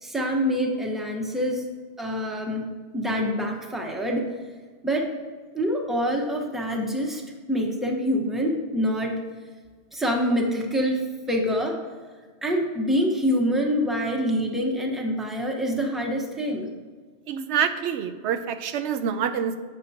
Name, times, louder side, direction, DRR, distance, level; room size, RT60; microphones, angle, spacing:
voice 1, 0.0-1.6 2.0-2.7 2.9-4.3 4.8-5.1 5.5-7.2 7.5-9.2 9.9-11.8 12.4-16.7, equal, ahead, 0 dB, 1.1 m, -26 dB
voice 2, 17.3-19.6, right 8 dB, 90° right, 9 dB, 0.9 m, -26 dB
11.0 x 8.2 x 2.8 m, 1.5 s
omnidirectional pair, 1.1 m